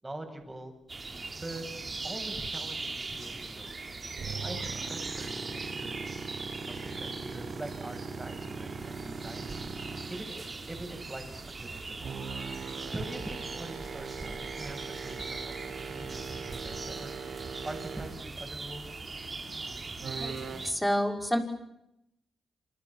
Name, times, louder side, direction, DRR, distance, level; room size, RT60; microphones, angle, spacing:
voice 1, 0.0-0.7 1.4-1.6 2.0-3.7 4.4-6.1 6.7-9.6 10.1-12.1 12.9-15.6 15.9-17.1 17.6-19.1, right 1 dB, 15° right, 5 dB, 7.9 m, -43 dB
sound 1, 0.9-20.7, right 3 dB, 30° right, 4.1 m, -40 dB
sound 2, 4.2-10.3 12.0-18.3 20.0-20.6, right 5 dB, 65° right, 5.4 m, -40 dB
voice 2, 20.2-21.4, equal, 5° left, 4 dB, 5.6 m, -29 dB
28.5 x 28.0 x 7.4 m, 0.85 s
cardioid pair, 95°, 0 cm